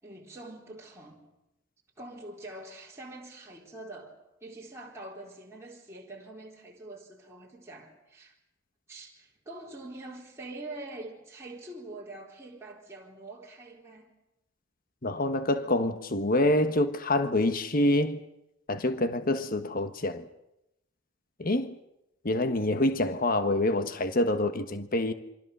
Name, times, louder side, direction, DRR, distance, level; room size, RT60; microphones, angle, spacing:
voice 1, 0.0-1.3 2.0-4.1 4.4-8.4 8.9-14.1, right 2 dB, 15° right, 4.1 m, -44 dB
voice 2, 15.0-18.2 18.7-20.3 21.4-21.7 22.2-25.1, left 1 dB, 45° left, 1.3 m, -26 dB
27.5 x 25.0 x 6.8 m
head